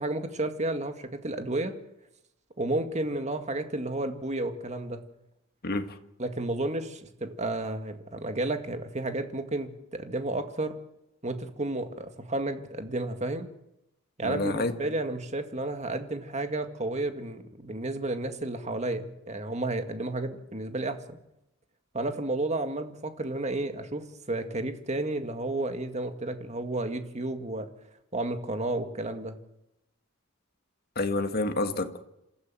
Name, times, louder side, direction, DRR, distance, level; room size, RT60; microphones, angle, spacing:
voice 1, 0.0-1.8 2.6-5.0 6.2-10.8 11.2-13.5 14.2-21.2 21.9-27.7 28.1-29.4, right 2 dB, 35° right, 7 dB, 2.0 m, -32 dB
voice 2, 5.6-6.0 14.2-14.7 31.0-32.0, left 2 dB, 50° left, 7 dB, 1.8 m, -29 dB
27.5 x 15.0 x 7.7 m, 0.86 s
head